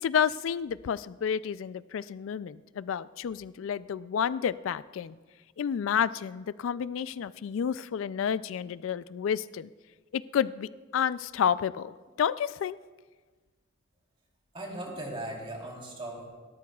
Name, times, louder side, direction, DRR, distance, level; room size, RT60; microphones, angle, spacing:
voice 1, 0.0-5.2 5.6-9.7 10.1-12.8, left 8 dB, 75° left, 16 dB, 0.3 m, -30 dB
voice 2, 14.5-16.3, right 1 dB, 30° right, -1 dB, 3.4 m, -38 dB
29.0 x 13.0 x 2.3 m, 1.4 s
head